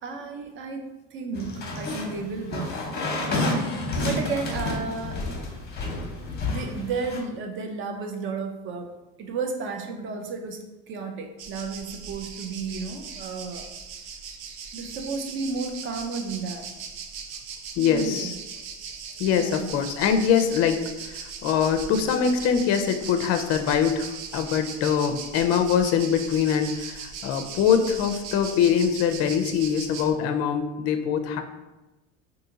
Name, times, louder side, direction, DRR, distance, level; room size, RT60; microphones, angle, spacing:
voice 1, 0.0-3.6 4.0-5.3 6.5-8.9 9.2-13.7 14.7-16.7 17.9-18.4 19.3-19.7, right 4 dB, 35° right, 4 dB, 0.5 m, -33 dB
sound 1, 1.3-7.2, left 2 dB, 30° left, 0.9 m, -30 dB
sound 2, 11.4-30.1, right 6 dB, 80° right, 0.5 m, -39 dB
voice 2, 17.8-18.3 19.2-20.8 21.1-31.4, left 7 dB, 45° left, 7 dB, 0.5 m, -23 dB
2.8 x 2.7 x 3.7 m, 1.0 s
supercardioid pair, 110°, 34 cm